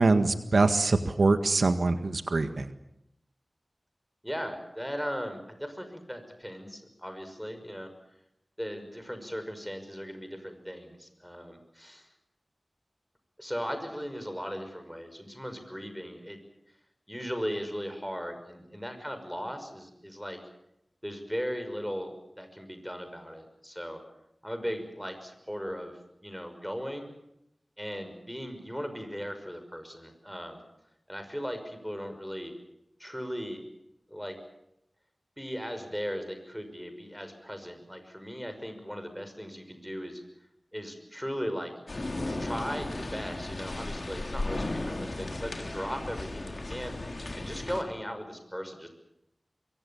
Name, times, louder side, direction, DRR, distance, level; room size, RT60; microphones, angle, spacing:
voice 1, 0.0-2.7, right 3 dB, 85° right, 8 dB, 1.7 m, -24 dB
voice 2, 4.2-7.9 8.6-12.1 13.4-16.4 17.1-20.4 21.0-22.1 22.4-24.0 24.4-25.9 26.2-27.1 27.8-30.6 31.1-32.5 33.0-33.6 34.1-34.4 35.4-40.2 40.7-41.7 42.2-47.0 47.3-48.9, equal, ahead, 7 dB, 5.9 m, -37 dB
sound 1, 41.9-47.8, left 2 dB, 50° left, 4.1 m, -35 dB
26.0 x 23.0 x 7.3 m, 0.81 s
wide cardioid pair, 70°, 0 cm